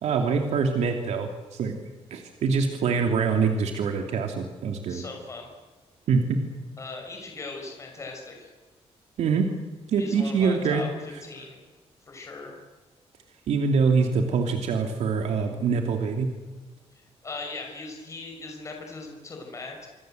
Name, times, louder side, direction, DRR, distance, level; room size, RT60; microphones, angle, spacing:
voice 1, 0.0-1.8 2.1-5.0 6.1-6.4 9.2-9.5 9.9-10.9 13.5-16.3, right 5 dB, 80° right, 4 dB, 2.7 m, -24 dB
voice 2, 4.9-5.5 6.8-8.5 10.0-11.6 12.1-12.6 17.2-19.9, left 3 dB, 25° left, 2 dB, 5.9 m, -39 dB
26.0 x 25.0 x 7.9 m, 1.3 s
wide cardioid pair, 180°, 11 cm